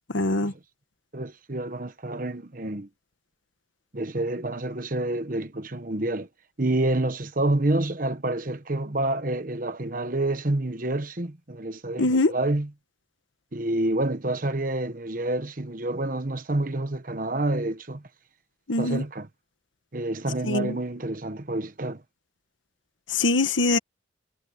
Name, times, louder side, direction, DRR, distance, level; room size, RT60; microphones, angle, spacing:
voice 1, 0.1-0.5 12.0-12.3 18.7-19.0 20.4-20.7 23.1-23.8, left 2 dB, 90° left, 1.5 m, -23 dB
voice 2, 1.1-2.9 3.9-6.3 6.6-12.7 13.5-18.0 18.8-19.3 19.9-22.0, right 2 dB, 45° right, 1.2 m, -28 dB
head